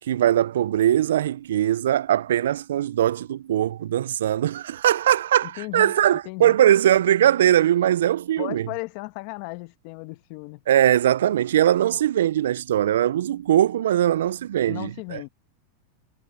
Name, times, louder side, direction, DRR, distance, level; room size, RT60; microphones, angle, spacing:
voice 1, 0.1-8.7 10.7-15.2, right 11 dB, 80° right, 0.3 m, -21 dB
voice 2, 5.6-6.6 8.4-10.6 14.7-15.3, left 25 dB, 55° left, 1.1 m, -36 dB
hypercardioid pair, 120°, 0 cm